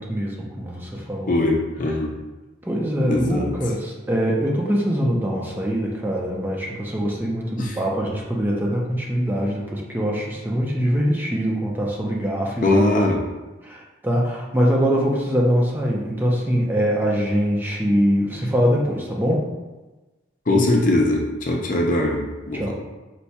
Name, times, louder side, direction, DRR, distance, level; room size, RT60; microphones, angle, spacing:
voice 1, 0.0-1.4 2.6-12.9 13.6-19.4 22.5-22.7, equal, 10° right, -3 dB, 0.5 m, -23 dB
voice 2, 1.3-2.1 3.0-3.5 7.6-7.8 12.6-13.2 20.5-22.7, left 2 dB, 40° left, 0 dB, 0.5 m, -21 dB
4.5 x 2.3 x 4.1 m, 1.2 s
head